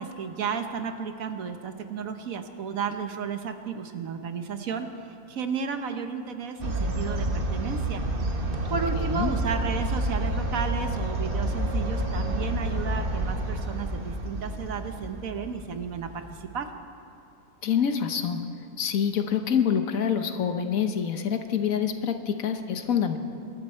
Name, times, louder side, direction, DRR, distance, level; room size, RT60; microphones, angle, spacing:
voice 1, 0.0-4.9 5.3-8.0 8.7-16.7, right 6 dB, 70° right, 7 dB, 1.4 m, -33 dB
sound 1, 6.6-16.4, right 1 dB, 40° right, 1.3 m, -29 dB
voice 2, 8.7-9.3 17.6-18.4 18.8-23.2, left 8 dB, 70° left, 7 dB, 1.4 m, -26 dB
24.5 x 12.5 x 4.4 m, 2.8 s
omnidirectional pair, 1.5 m